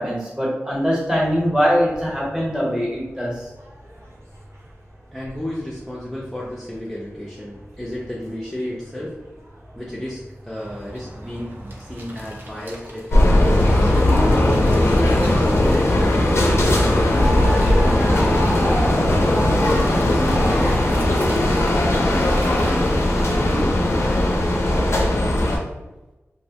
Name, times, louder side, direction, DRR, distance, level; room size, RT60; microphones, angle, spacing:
voice 1, 0.0-3.5, equal, 15° right, -5 dB, 0.9 m, -22 dB
sound 1, 1.0-20.8, equal, 85° right, 0.7 m, -37 dB
voice 2, 5.1-9.4 9.7-10.2 10.4-15.0 15.6-18.8 20.6-21.5 21.9-25.6, left 1 dB, 5° left, -7 dB, 0.5 m, -33 dB
sound 2, 10.5-23.6, right 1 dB, 45° right, 0.6 m, -37 dB
sound 3, 13.1-25.6, left 1 dB, 65° left, 0.4 m, -18 dB
2.6 x 2.1 x 2.8 m, 1.1 s
wide cardioid pair, 90°, 5 cm